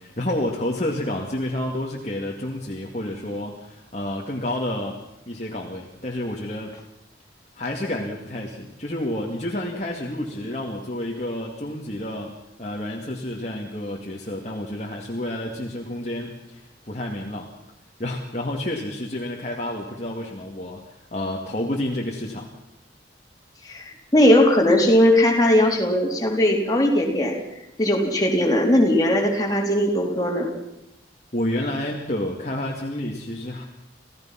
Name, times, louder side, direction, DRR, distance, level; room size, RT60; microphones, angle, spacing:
voice 1, 0.0-5.0 5.3-6.8 7.6-12.3 12.6-17.5 18.0-22.5 31.3-33.6, left 1 dB, 35° left, -1 dB, 2.2 m, -29 dB
voice 2, 23.6-27.4 27.8-30.5, left 1 dB, 20° left, -1 dB, 3.8 m, -19 dB
27.5 x 16.5 x 5.9 m, 0.88 s
head